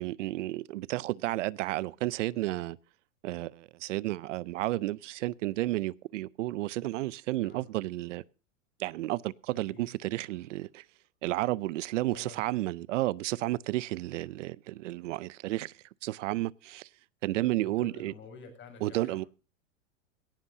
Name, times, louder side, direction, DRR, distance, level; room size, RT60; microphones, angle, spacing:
voice 1, 0.0-2.8 3.2-8.2 8.8-10.8 11.2-15.7 16.0-16.9 17.2-18.1 18.8-19.2, right 17 dB, 70° right, 0.6 m, -32 dB
voice 2, 7.4-7.7 9.7-9.9 12.1-12.5 17.6-19.3, left 4 dB, 30° left, 6.3 m, -49 dB
17.5 x 16.0 x 2.7 m
hypercardioid pair, 115°, 38 cm